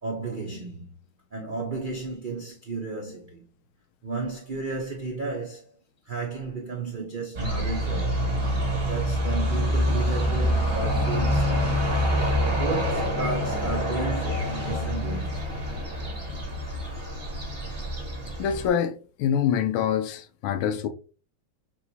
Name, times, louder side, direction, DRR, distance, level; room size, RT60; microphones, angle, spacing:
voice 1, 0.0-0.8 1.3-3.4 4.0-5.7 6.0-8.3 8.8-11.8 12.6-15.5, right 4 dB, 65° right, 0.4 m, -33 dB
sound 1, 7.4-18.7, equal, 30° right, 1.4 m, -26 dB
voice 2, 18.4-20.9, left 8 dB, 85° left, 1.4 m, -25 dB
6.1 x 3.0 x 2.7 m
omnidirectional pair, 2.2 m